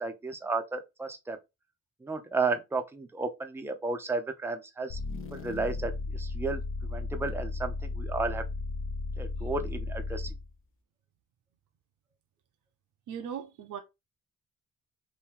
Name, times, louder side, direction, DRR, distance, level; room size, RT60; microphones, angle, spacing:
voice 1, 0.0-1.4 2.0-5.0 5.3-6.6 6.9-8.4 9.2-10.3, right 3 dB, 10° right, 0.5 m, -33 dB
sound 1, 4.9-10.5, left 3 dB, 45° left, 0.6 m, -35 dB
voice 2, 13.1-13.8, right 8 dB, 80° right, 0.6 m, -38 dB
3.0 x 2.7 x 3.5 m
cardioid pair, 130°, 31 cm